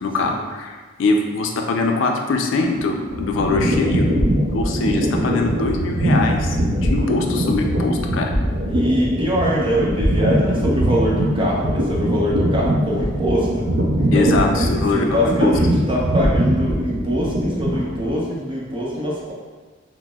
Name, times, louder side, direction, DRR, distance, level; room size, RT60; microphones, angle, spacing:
voice 1, 0.0-4.1 4.5-8.3 14.1-15.5, left 3 dB, 70° left, 2 dB, 0.4 m, -22 dB
sound 1, 2.9-18.2, equal, 60° right, 0.5 m, -21 dB
voice 2, 8.7-13.7 14.0-19.3, equal, 25° right, -5 dB, 0.7 m, -23 dB
5.8 x 2.0 x 2.3 m, 1.4 s
head